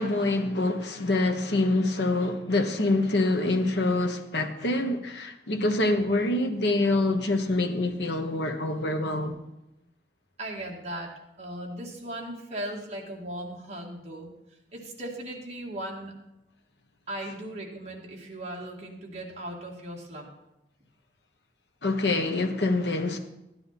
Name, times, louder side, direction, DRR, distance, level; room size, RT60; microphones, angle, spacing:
voice 1, 0.0-9.4 21.8-23.2, left 2 dB, 70° left, 1.1 m, -26 dB
voice 2, 10.4-11.1 11.4-14.3 14.7-16.1 17.1-20.3, right 1 dB, 35° right, 2.1 m, -37 dB
12.5 x 9.9 x 4.2 m
head